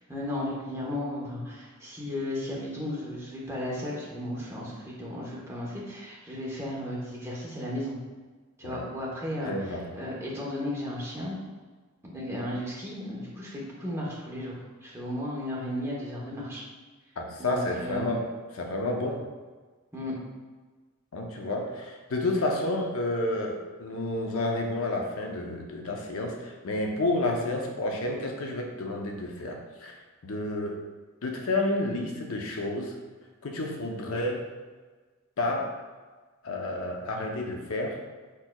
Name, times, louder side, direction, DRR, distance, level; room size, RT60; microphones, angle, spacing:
voice 1, 0.1-4.7 5.0-8.0 8.6-11.4 12.0-16.6 17.4-18.1 19.9-20.1, left 1 dB, 10° right, -5 dB, 0.9 m, -34 dB
voice 2, 9.5-9.9 17.2-19.2 21.1-30.8 31.2-33.0 33.4-34.4 35.4-35.7 36.4-38.0, left 2 dB, 70° left, 2 dB, 0.6 m, -30 dB
4.7 x 4.4 x 2.3 m, 1.3 s
head